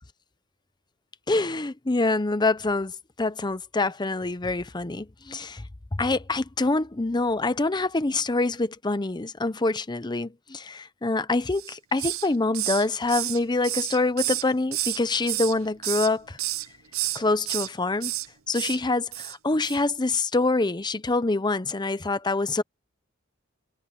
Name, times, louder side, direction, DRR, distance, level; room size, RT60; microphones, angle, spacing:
voice 1, 1.3-2.9 3.2-5.6 5.9-16.4 17.1-18.1 18.5-22.6, left 3 dB, 20° left, 0.7 m, -25 dB
Hiss, 11.5-12.3 12.5-15.0 15.3-16.1 16.4-16.7 16.9-17.7 18.0-18.3 18.5-18.8 19.1-19.4 19.6-19.8, right 16 dB, 85° right, 0.7 m, -30 dB
head